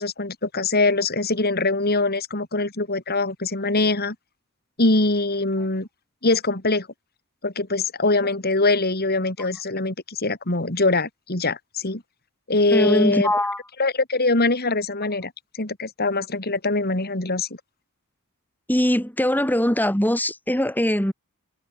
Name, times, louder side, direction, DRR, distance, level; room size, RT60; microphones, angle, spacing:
voice 1, 0.0-4.2 4.8-5.9 6.2-6.9 7.4-12.0 12.5-13.3 13.8-15.3 15.6-17.5, left 2 dB, 45° left, 4.0 m, -23 dB
voice 2, 12.7-13.6 18.7-21.1, left 1 dB, 10° left, 4.4 m, -21 dB
head